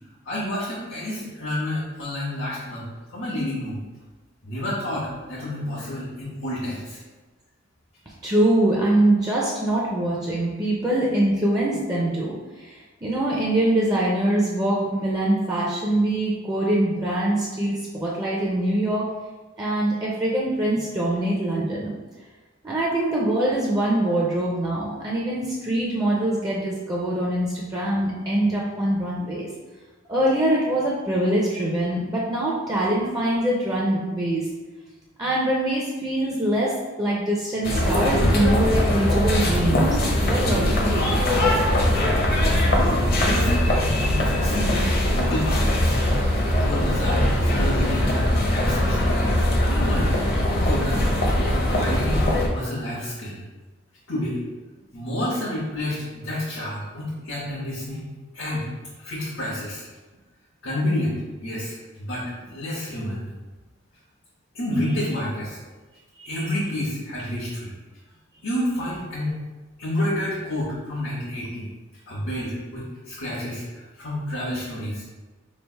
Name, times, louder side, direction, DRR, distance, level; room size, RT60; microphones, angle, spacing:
voice 1, 0.3-2.8 3.1-3.8 4.4-7.0 41.7-41.8 42.8-46.0 46.6-49.2 49.7-50.2 50.6-51.1 51.6-53.4 54.1-54.4 54.9-58.7 59.0-59.8 60.6-62.2 62.5-63.2 64.5-65.6 66.3-67.7 68.4-69.4 69.8-71.7 72.1-73.6 74.0-75.0, left 1 dB, 90° left, -10 dB, 1.2 m, -29 dB
voice 2, 8.2-19.1 19.6-21.9 22.6-29.5 30.1-34.5 35.2-41.1 66.2-66.5, right 1 dB, 20° right, -4 dB, 0.5 m, -23 dB
sound 1, 37.6-52.5, left 1 dB, 50° left, 0.6 m, -21 dB
3.3 x 2.4 x 4.4 m, 1.2 s
head